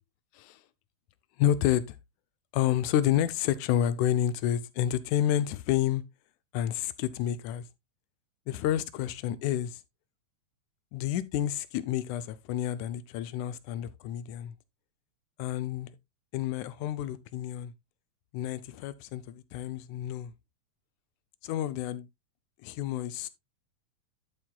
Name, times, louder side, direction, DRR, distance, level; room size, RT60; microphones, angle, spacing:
voice 1, 1.4-2.0 2.5-6.0 6.5-7.7 8.5-9.8 10.9-14.5 15.4-16.0 16.3-17.7 18.3-20.3 21.4-22.1 22.6-23.3, left 11 dB, 85° left, 2.0 m, -29 dB
11.5 x 7.2 x 2.3 m
omnidirectional pair, 3.4 m